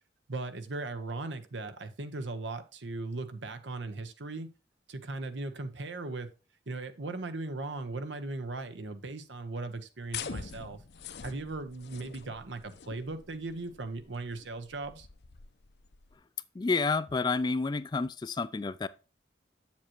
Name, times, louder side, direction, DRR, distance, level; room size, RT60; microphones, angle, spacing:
voice 1, 0.3-4.5 4.9-6.3 6.7-10.8 11.2-15.1, right 3 dB, 80° right, 0.9 m, -38 dB
sound 1, 10.1-16.1, left 6 dB, 60° left, 0.6 m, -45 dB
voice 2, 16.5-18.9, left 4 dB, 25° left, 0.3 m, -29 dB
7.7 x 7.3 x 2.9 m
head